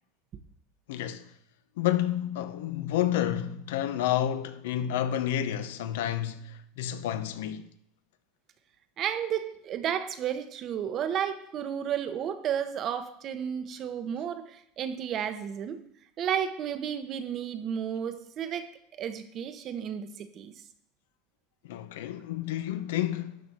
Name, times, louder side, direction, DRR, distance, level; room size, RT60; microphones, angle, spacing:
voice 1, 0.9-1.3 1.8-7.7 21.6-23.4, left 11 dB, 85° left, 0.8 m, -30 dB
voice 2, 9.0-15.8 16.2-18.7 19.0-20.5, right 9 dB, 35° right, 0.9 m, -32 dB
12.0 x 4.3 x 7.8 m
supercardioid pair, 150°, 0 cm